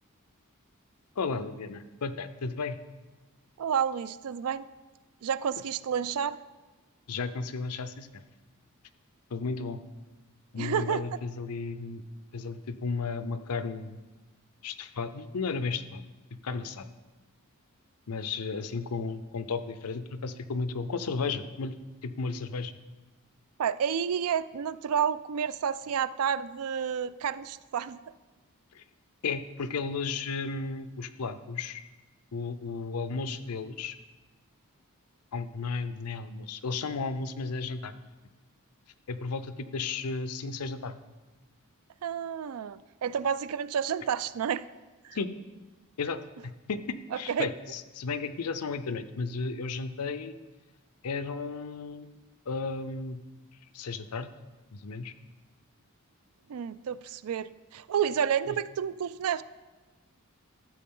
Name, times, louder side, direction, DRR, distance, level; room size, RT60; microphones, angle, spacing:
voice 1, 1.2-2.8 7.1-8.2 9.3-9.8 10.5-12.0 12.3-14.0 14.6-16.0 16.4-16.9 18.1-21.7 22.0-22.7 28.7-28.8 29.2-31.8 32.3-34.0 35.3-37.9 39.1-41.0 45.1-45.3 46.0-46.2 46.7-46.8 47.1-50.3 51.0-52.1 52.5-53.2 53.7-54.3 54.7-55.1 58.5-58.6, left 4 dB, 85° left, 12 dB, 0.6 m, -34 dB
voice 2, 3.6-4.7 5.2-6.4 10.6-11.0 23.6-28.0 42.0-44.6 45.0-45.2 47.1-47.5 56.5-59.4, right 8 dB, 75° right, 16 dB, 0.4 m, -30 dB
13.0 x 7.6 x 3.8 m, 1.2 s
head